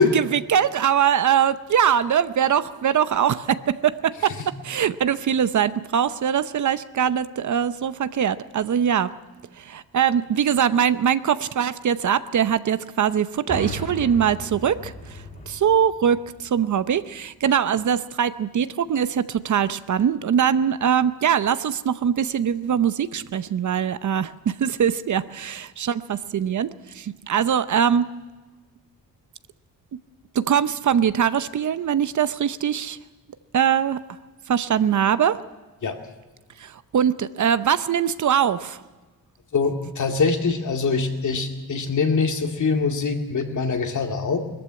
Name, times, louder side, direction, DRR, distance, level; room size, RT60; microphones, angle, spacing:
voice 1, 0.1-4.3 4.6-9.1 9.6-28.1 30.3-33.0 33.5-34.0 34.5-35.4 36.6-38.8, right 8 dB, 55° right, 14 dB, 0.8 m, -22 dB
sound 1, 13.5-17.1, left 2 dB, 25° left, 3.4 m, -37 dB
voice 2, 39.5-44.4, left 4 dB, 55° left, 4 dB, 2.3 m, -23 dB
20.5 x 14.0 x 9.8 m, 1.2 s
cardioid pair, 120°, 36 cm